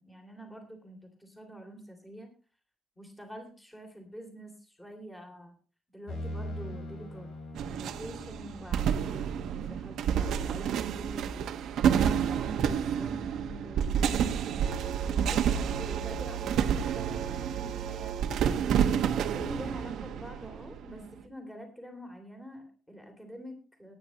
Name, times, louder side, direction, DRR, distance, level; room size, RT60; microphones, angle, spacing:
voice 1, 0.0-2.3 3.0-5.5 5.9-7.3 7.6-11.5 11.9-18.2 19.2-23.9, equal, 5° left, 4 dB, 3.2 m, -46 dB
sound 1, 6.1-9.8, equal, 75° left, 4.9 m, -42 dB
sound 2, 7.5-21.1, right 8 dB, 75° right, 1.3 m, -29 dB
18.5 x 9.9 x 3.1 m, 0.36 s
cardioid pair, 180°, 0 cm